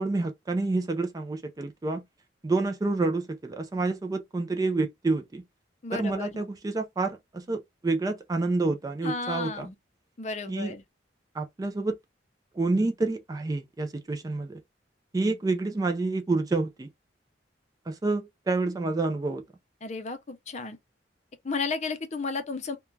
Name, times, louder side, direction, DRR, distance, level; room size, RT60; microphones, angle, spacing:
voice 1, 0.0-2.0 2.4-5.4 5.9-9.7 10.5-10.7 11.3-12.0 12.5-14.6 15.1-16.9 17.9-19.4, right 3 dB, 20° right, 0.3 m, -28 dB
voice 2, 5.8-6.4 9.0-9.8 10.2-10.8 19.8-20.8 21.4-22.8, left 4 dB, 40° left, 0.5 m, -33 dB
2.3 x 2.2 x 3.1 m
head